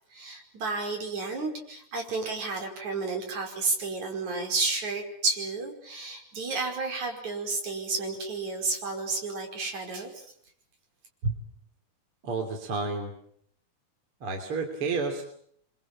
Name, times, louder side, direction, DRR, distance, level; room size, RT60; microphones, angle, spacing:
voice 1, 0.1-10.3, right 3 dB, 60° right, 3 dB, 6.5 m, -31 dB
voice 2, 12.2-13.1 14.2-15.2, right 3 dB, 40° right, 4 dB, 3.8 m, -30 dB
29.0 x 25.0 x 7.4 m, 0.67 s
omnidirectional pair, 3.8 m